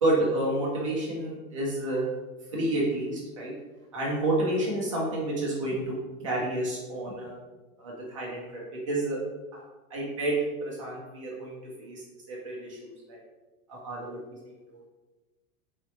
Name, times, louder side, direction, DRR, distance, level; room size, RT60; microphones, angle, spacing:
voice 1, 0.0-2.1 2.5-3.5 3.9-5.9 6.2-7.4 7.8-8.6 8.9-9.2 9.5-9.6 9.9-13.2 13.7-14.2 14.7-14.9, right 1 dB, 25° right, -5 dB, 0.4 m, -30 dB
3.9 x 3.1 x 2.9 m, 1.1 s
supercardioid pair, 175°, 44 cm